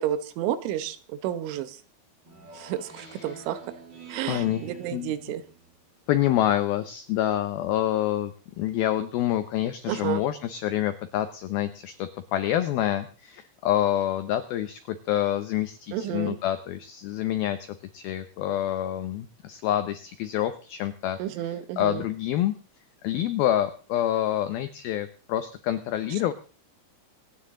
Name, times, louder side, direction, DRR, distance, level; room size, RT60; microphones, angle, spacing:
voice 1, 0.0-1.8 2.6-3.6 4.1-5.4 9.9-10.2 15.9-16.4 21.2-22.1, right 11 dB, 90° right, 13 dB, 3.5 m, -31 dB
Speech synthesizer, 2.2-5.8, right 5 dB, 30° right, 2.2 m, -46 dB
voice 2, 3.0-3.4 4.3-5.1 6.1-22.5 23.0-26.3, left 12 dB, 85° left, 10 dB, 2.1 m, -27 dB
25.5 x 9.5 x 3.7 m, 0.37 s
omnidirectional pair, 5.4 m